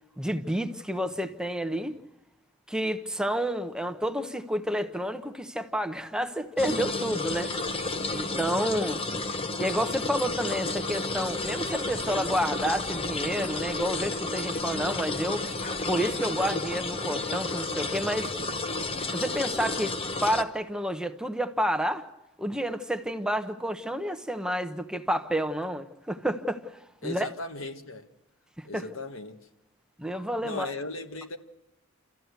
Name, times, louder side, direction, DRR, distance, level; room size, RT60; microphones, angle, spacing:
voice 1, 0.2-2.0 2.7-7.5 8.1-9.0 9.6-15.5 15.9-18.3 19.1-19.9 20.2-22.0 22.4-26.6 27.0-27.3 28.6-28.8 30.0-30.7, equal, 5° right, 0.8 m, -29 dB
sound 1, 6.6-20.4, left 2 dB, 30° left, 0.9 m, -31 dB
Dog, 10.7-16.4, left 2 dB, 45° left, 2.3 m, -47 dB
voice 2, 27.0-28.1 28.6-29.4 30.4-31.4, left 2 dB, 75° left, 1.5 m, -37 dB
29.5 x 14.0 x 8.1 m
head